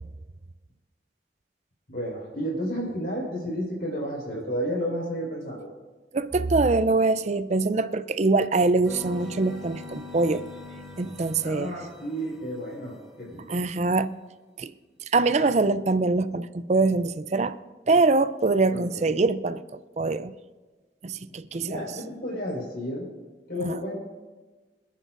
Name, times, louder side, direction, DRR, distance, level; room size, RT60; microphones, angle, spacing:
voice 1, 1.9-5.7 11.4-13.5 18.7-19.1 21.3-23.1 23.5-24.0, equal, 55° left, 4.9 m, -32 dB
voice 2, 6.1-10.4 11.0-11.7 13.5-14.1 14.6-14.7 15.1-17.6 17.9-20.3 21.0-21.8 23.6-23.8, right 3 dB, 40° right, 0.5 m, -24 dB
sound 1, 8.8-13.1, left 2 dB, ahead, 3.0 m, -42 dB
27.0 x 10.0 x 2.6 m
head